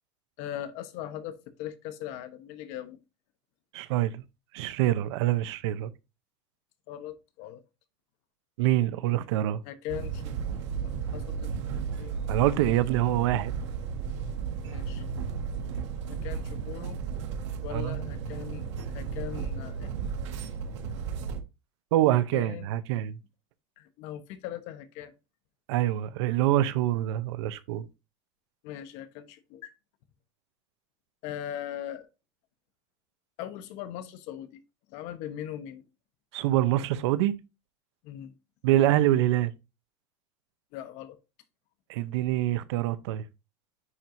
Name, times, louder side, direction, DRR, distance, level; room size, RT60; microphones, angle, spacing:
voice 1, 0.4-3.0 6.9-7.6 9.6-12.2 14.6-15.0 16.1-17.0 17.6-19.9 22.3-22.7 23.8-25.1 28.6-29.7 31.2-32.1 33.4-34.6 34.9-35.9 38.0-38.3 40.7-41.2, left 11 dB, 50° left, 1.1 m, -40 dB
voice 2, 3.7-4.2 4.5-5.9 8.6-9.6 12.3-13.5 17.7-18.0 21.9-23.2 25.7-27.9 36.3-37.4 38.6-39.5 41.9-43.2, right 14 dB, 75° right, 0.7 m, -25 dB
sound 1, 9.9-21.4, right 6 dB, 90° right, 1.4 m, -34 dB
9.8 x 4.6 x 2.6 m
supercardioid pair, 155°, 14 cm